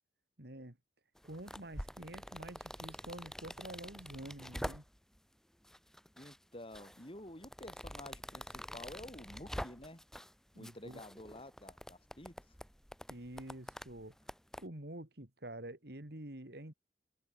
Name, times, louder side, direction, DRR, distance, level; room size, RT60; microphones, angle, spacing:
voice 1, 0.4-0.8 1.2-4.8 10.5-11.0 13.1-14.1 14.6-16.7, right 1 dB, 60° right, 2.8 m, -48 dB
sound 1, 1.2-5.2 5.7-6.4 6.7-10.3 10.6-14.6, equal, 5° left, 5.6 m, -46 dB
voice 2, 6.2-10.0 10.6-12.4, left 1 dB, 30° left, 5.3 m, -50 dB
head